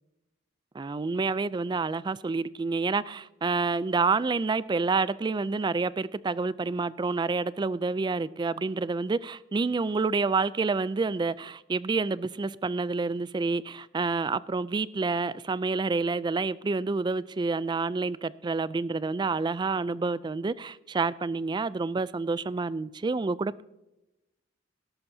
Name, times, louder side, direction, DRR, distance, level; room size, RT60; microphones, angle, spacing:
voice 1, 0.7-23.6, right 4 dB, 25° right, 0.3 m, -28 dB
18.5 x 11.5 x 2.7 m
head